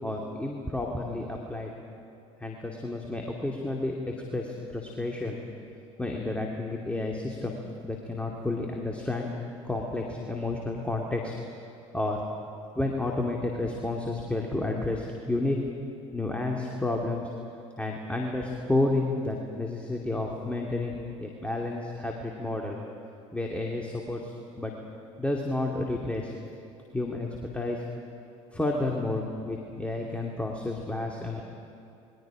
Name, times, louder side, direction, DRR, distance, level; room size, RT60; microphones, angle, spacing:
voice 1, 0.0-1.7 2.4-5.4 6.0-7.6 7.8-9.3 9.6-11.3 11.9-12.2 12.8-15.6 16.1-17.2 17.8-22.8 23.3-24.7 25.2-26.3 26.9-27.3 27.5-27.8 28.5-31.4, left 2 dB, 5° left, 0 dB, 2.6 m, -31 dB
28.0 x 21.5 x 5.1 m, 2.7 s
figure-of-eight pair, 60°, 17 cm